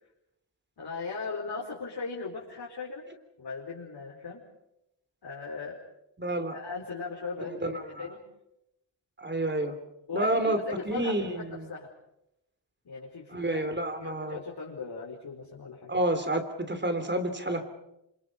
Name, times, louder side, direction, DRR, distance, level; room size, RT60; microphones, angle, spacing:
voice 1, 0.8-3.0 3.4-4.4 5.2-5.8 6.5-8.3 9.6-9.7 10.1-11.9 12.8-15.9, left 4 dB, 55° left, -3 dB, 4.8 m, -38 dB
voice 2, 6.2-6.6 7.6-8.1 9.2-9.7 10.1-10.6 10.9-11.7 13.3-14.4 15.9-17.7, right 1 dB, 25° right, 8 dB, 3.1 m, -29 dB
27.5 x 26.5 x 5.5 m, 0.83 s
wide cardioid pair, 100°, 46 cm